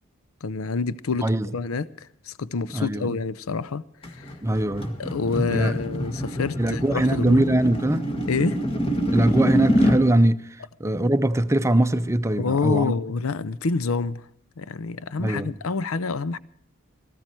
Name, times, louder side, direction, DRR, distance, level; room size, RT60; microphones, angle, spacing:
voice 1, 0.4-4.3 5.0-7.4 8.3-8.6 12.4-14.3 14.6-16.4, left 4 dB, 80° left, 0.6 m, -27 dB
voice 2, 2.7-3.1 4.4-5.0 5.5-5.7 6.6-8.0 9.1-12.9 15.2-15.5, right 1 dB, 15° right, 0.6 m, -22 dB
sound 1, 4.0-10.0, equal, 25° left, 2.0 m, -25 dB
18.0 x 15.0 x 4.5 m
head